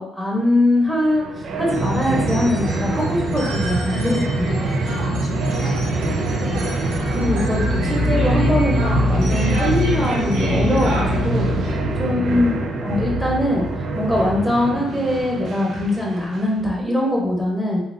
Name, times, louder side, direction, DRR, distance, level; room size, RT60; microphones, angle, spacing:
voice 1, 0.0-4.7 6.5-6.6 6.9-11.7 12.0-13.7 13.9-17.8, left 1 dB, 5° right, -3 dB, 1.2 m, -22 dB
sound 1, 0.8-16.6, right 3 dB, 55° right, 0.4 m, -28 dB
sound 2, 1.7-11.7, right 2 dB, 85° right, 0.8 m, -25 dB
voice 2, 3.9-6.6, left 5 dB, 60° left, 2 dB, 0.6 m, -36 dB
sound 3, 7.0-14.6, left 2 dB, 40° right, 0.9 m, -25 dB
3.9 x 2.7 x 2.7 m, 0.83 s
cardioid pair, 90°, 0 cm